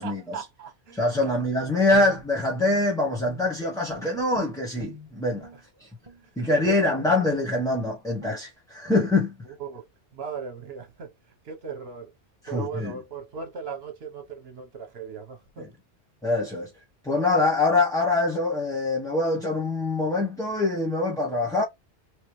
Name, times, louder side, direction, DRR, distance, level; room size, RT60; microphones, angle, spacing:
voice 1, 0.0-1.3 1.7-1.8 5.8-5.9 6.6-7.3 9.4-9.9 10.1-11.1 11.4-12.1 12.5-15.7, right 6 dB, 60° right, 1.3 m, -38 dB
voice 2, 0.9-5.5 5.8-5.9 6.4-9.3 12.5-12.9 15.6-15.7 16.2-16.7 17.0-21.6, left 2 dB, 5° left, 0.9 m, -24 dB
Guitar, 1.9-3.6 3.9-5.6 6.0-6.2 6.6-6.9 7.3-7.4 7.7-7.9 8.2-8.4, right 2 dB, 30° right, 1.0 m, -45 dB
3.2 x 3.2 x 3.1 m
omnidirectional pair, 1.2 m